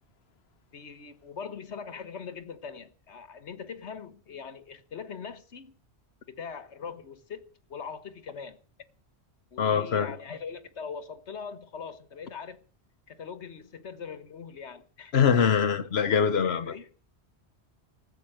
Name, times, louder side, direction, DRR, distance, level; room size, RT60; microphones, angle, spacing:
voice 1, 0.7-5.7 6.3-7.4 7.7-8.6 9.5-12.6 13.1-15.1 16.4-16.9, left 6 dB, 85° left, 1.5 m, -41 dB
voice 2, 9.6-10.1 15.1-16.7, left 7 dB, 70° left, 1.2 m, -23 dB
14.5 x 8.0 x 8.9 m
omnidirectional pair, 1.1 m